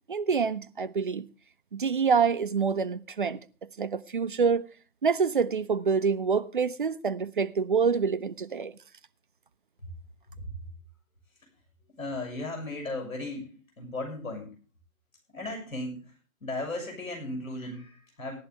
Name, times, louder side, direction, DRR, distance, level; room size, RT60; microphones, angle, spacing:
voice 1, 0.1-1.3 1.7-3.4 3.8-4.7 5.0-8.8, right 5 dB, 35° right, 0.6 m, -26 dB
voice 2, 10.3-10.7 12.0-14.6 15.3-18.4, left 2 dB, 65° left, 6.8 m, -36 dB
16.5 x 12.0 x 3.4 m
figure-of-eight pair, 135°, 44 cm